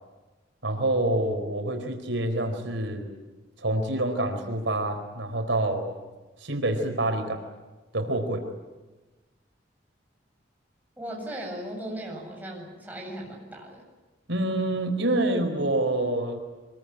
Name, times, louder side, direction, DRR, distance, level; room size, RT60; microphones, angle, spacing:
voice 1, 0.6-3.1 3.6-5.9 6.4-7.4 7.9-8.4 14.3-16.4, right 1 dB, 85° right, 5 dB, 4.3 m, -27 dB
voice 2, 11.0-13.8, right 1 dB, 10° right, -2 dB, 7.8 m, -37 dB
25.0 x 22.5 x 9.9 m, 1.2 s
head